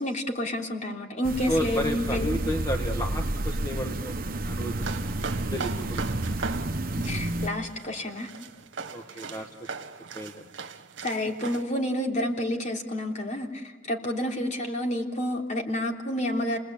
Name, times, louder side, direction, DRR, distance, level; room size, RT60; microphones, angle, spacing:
voice 1, 0.0-2.3 7.0-8.3 11.0-16.6, left 1 dB, 40° left, 1 dB, 3.5 m, -29 dB
sound 1, 1.2-7.5, right 1 dB, 50° right, 1.1 m, -30 dB
voice 2, 1.5-4.2 4.4-4.8 5.5-6.1 8.9-9.7 10.1-10.3, equal, 20° left, 3 dB, 1.5 m, -32 dB
sound 2, 4.7-11.6, right 5 dB, 75° right, 1.6 m, -39 dB
30.0 x 20.5 x 8.6 m, 1.3 s
head